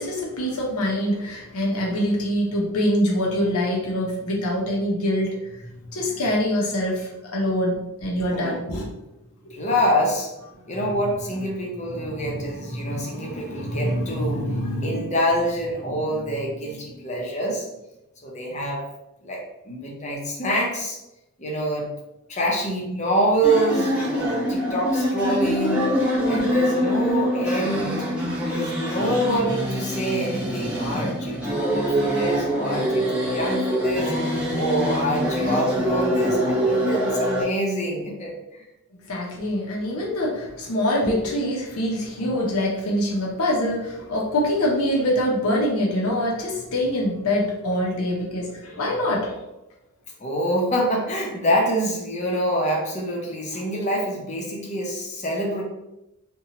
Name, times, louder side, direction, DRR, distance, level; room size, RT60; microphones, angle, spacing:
voice 1, 0.0-5.5 5.9-8.9 38.9-49.4, left 1 dB, 75° left, -2 dB, 0.6 m, -24 dB
voice 2, 9.5-10.3 10.7-17.7 18.2-18.8 19.2-21.0 21.4-21.9 22.3-25.9 26.2-28.1 28.5-34.1 34.5-38.6 48.7-48.9 50.2-55.6, right 1 dB, 30° left, -1 dB, 0.6 m, -26 dB
sound 1, 23.4-37.4, equal, 5° right, 0.7 m, -24 dB
2.8 x 2.2 x 2.8 m, 0.91 s
head